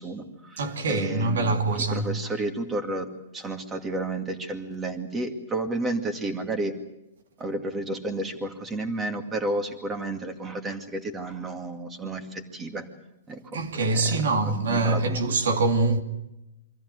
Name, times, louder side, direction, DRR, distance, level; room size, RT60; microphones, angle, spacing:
voice 1, 0.0-3.1 3.3-6.7 7.4-12.9 13.3-15.3, right 2 dB, 15° right, 2.3 m, -32 dB
voice 2, 0.6-2.2 13.5-16.0, right 3 dB, 80° right, 2.7 m, -24 dB
24.5 x 14.5 x 9.6 m
hypercardioid pair, 150°, 0 cm